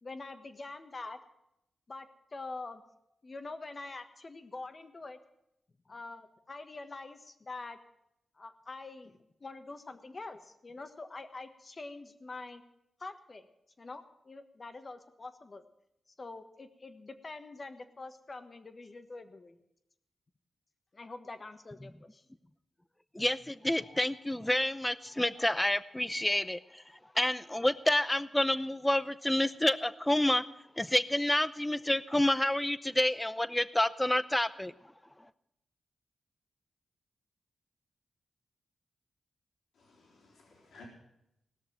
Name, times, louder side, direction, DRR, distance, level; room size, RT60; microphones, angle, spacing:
voice 1, 0.0-1.2 1.9-2.8 3.2-5.2 5.8-7.8 8.4-12.6 13.0-13.5 13.8-15.6 16.2-19.6 20.9-22.2, left 3 dB, 40° left, 9 dB, 1.4 m, -45 dB
voice 2, 23.1-26.8 27.2-30.4 30.8-34.7, left 1 dB, 10° left, 15 dB, 0.7 m, -29 dB
voice 3, 39.7-40.8, left 4 dB, 85° left, -2 dB, 4.1 m, -57 dB
18.0 x 6.7 x 9.2 m, 0.83 s
cardioid pair, 70°, 0 cm